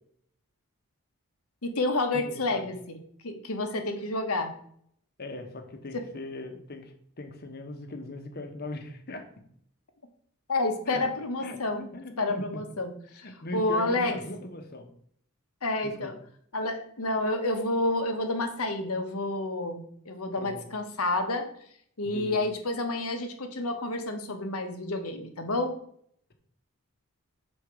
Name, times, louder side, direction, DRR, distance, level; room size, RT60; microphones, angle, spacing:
voice 1, 1.6-2.8 3.2-4.5 5.9-6.0 10.5-11.8 12.2-13.3 13.5-14.2 15.6-16.2 16.5-21.5 22.0-25.8, left 2 dB, 80° left, 6 dB, 1.3 m, -29 dB
voice 2, 2.3-2.7 5.2-9.4 10.9-11.1 11.4-12.6 13.1-14.9 15.8-16.1 20.4-20.6 22.0-22.4, left 1 dB, 45° left, 5 dB, 1.1 m, -39 dB
6.6 x 4.5 x 6.0 m, 0.64 s
head